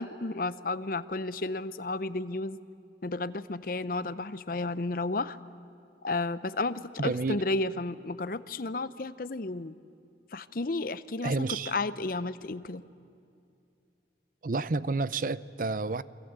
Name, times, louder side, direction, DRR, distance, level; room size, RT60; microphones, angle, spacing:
voice 1, 0.0-2.6 3.0-5.4 6.0-9.7 10.3-12.8, left 2 dB, 50° left, 15 dB, 0.7 m, -32 dB
voice 2, 7.0-7.4 11.2-11.8 14.4-16.0, right 3 dB, 45° right, 17 dB, 0.6 m, -30 dB
27.5 x 24.5 x 8.1 m, 2.6 s
head